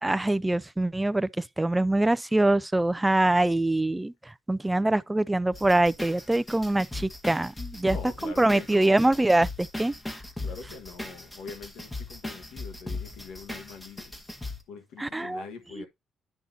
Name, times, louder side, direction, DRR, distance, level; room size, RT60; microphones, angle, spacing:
voice 1, 0.0-8.0 8.2-9.9 15.0-15.4, right 2 dB, 10° right, 0.3 m, -24 dB
sound 1, 5.5-14.6, left 2 dB, 15° left, 1.6 m, -38 dB
voice 2, 7.8-9.0 10.4-14.1 14.7-15.9, left 5 dB, 90° left, 1.4 m, -43 dB
10.5 x 5.5 x 2.7 m
cardioid pair, 90°, 0 cm